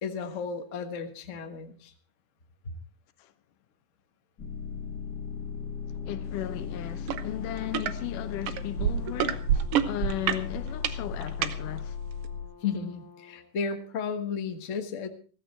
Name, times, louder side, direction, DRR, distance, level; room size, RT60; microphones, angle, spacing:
voice 1, 0.0-1.9 12.6-15.1, left 6 dB, 50° left, 0.9 m, -33 dB
sound 1, 4.4-12.5, left 6 dB, 35° left, 2.0 m, -37 dB
voice 2, 6.1-12.0, left 13 dB, 80° left, 2.4 m, -36 dB
sound 2, 7.1-7.2 7.5-7.9 8.5-11.5 12.2-12.3, right 10 dB, 75° right, 1.4 m, -27 dB
Brass instrument, 7.2-13.5, left 6 dB, 10° left, 1.4 m, -52 dB
15.0 x 15.0 x 4.4 m
omnidirectional pair, 3.8 m